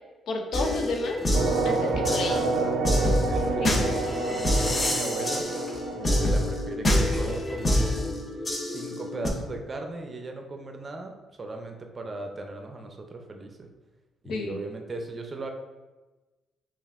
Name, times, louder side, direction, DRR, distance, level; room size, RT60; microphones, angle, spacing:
voice 1, 0.3-1.3 1.6-2.4 3.6-3.8 14.2-14.6, left 3 dB, 70° left, 3 dB, 0.5 m, -31 dB
sound 1, 0.5-9.3, left 1 dB, 30° left, 0.8 m, -27 dB
sound 2, 1.3-6.7, right 3 dB, 90° right, 0.4 m, -29 dB
sound 3, 1.9-2.5 3.3-3.8 5.5-6.0 7.1-7.7, right 2 dB, ahead, 1.2 m, -37 dB
voice 2, 2.2-5.4 5.9-8.1 8.6-11.1 11.4-13.7 14.2-15.5, right 2 dB, 35° right, 3 dB, 0.5 m, -38 dB
5.3 x 2.5 x 2.4 m, 1.2 s
cardioid pair, 90°, 0 cm